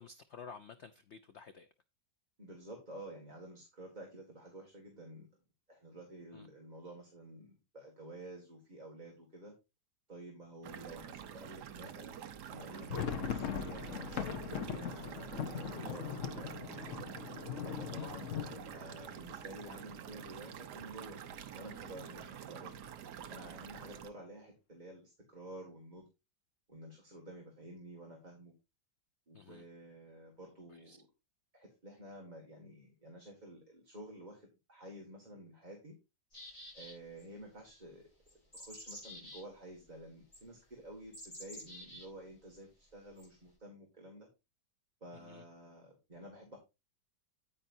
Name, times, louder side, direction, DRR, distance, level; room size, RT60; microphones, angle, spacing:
voice 1, 0.0-1.7 6.3-6.5 17.8-18.1 22.2-22.3 29.3-29.6 30.7-31.0 45.1-45.4, left 6 dB, 75° left, 0.6 m, -52 dB
voice 2, 2.4-5.3 5.7-9.5 10.1-12.1 12.5-17.0 17.6-21.2 21.5-22.7 23.3-26.0 26.7-28.5 29.3-31.1 31.5-35.9 36.7-38.1 38.5-44.3 45.0-46.6, right 1 dB, 25° right, 2.0 m, -51 dB
sound 1, 10.6-24.1, right 9 dB, 65° right, 1.3 m, -47 dB
sound 2, 12.5-20.3 20.6-20.7 21.0-21.2 21.7-22.2, left 8 dB, 55° left, 1.0 m, -41 dB
sound 3, 36.3-37.2 38.3-39.4 40.3-40.4 41.1-42.1 43.2-43.3, equal, 20° left, 6.2 m, -49 dB
9.7 x 8.9 x 2.7 m
omnidirectional pair, 2.0 m